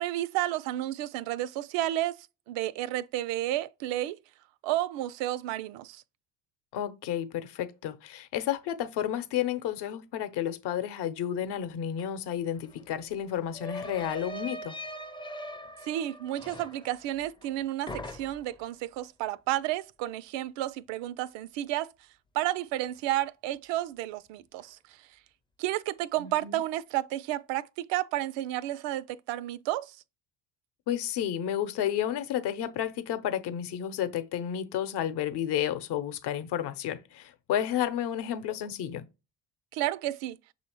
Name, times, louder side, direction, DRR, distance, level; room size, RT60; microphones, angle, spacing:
voice 1, 0.0-2.2 2.5-4.2 4.6-6.0 15.8-21.9 22.3-24.8 25.6-30.0 39.7-40.4, right 14 dB, 60° right, 0.5 m, -31 dB
voice 2, 6.7-14.8 26.2-26.6 30.9-39.0, left 10 dB, 55° left, 0.9 m, -31 dB
sound 1, 12.0-12.1 12.3-17.6 17.9-18.6, left 1 dB, 10° left, 0.5 m, -42 dB
6.3 x 2.8 x 2.9 m
hypercardioid pair, 65°, 49 cm